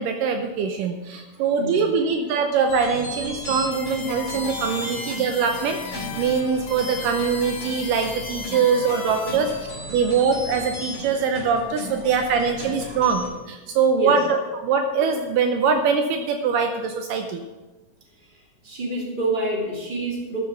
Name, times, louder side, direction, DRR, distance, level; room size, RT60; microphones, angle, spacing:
voice 1, 0.0-9.5 9.9-17.5, right 5 dB, 75° right, 5 dB, 2.3 m, -23 dB
voice 2, 1.1-1.8 12.0-12.1 12.8-13.0 14.0-14.2 18.2-20.4, right 1 dB, 15° right, -3 dB, 2.4 m, -29 dB
sound 1, 2.7-13.3, equal, 15° left, 4.6 m, -36 dB
sound 2, 3.7-9.7, left 5 dB, 80° left, 3.5 m, -36 dB
13.0 x 7.3 x 5.9 m, 1.1 s
omnidirectional pair, 4.0 m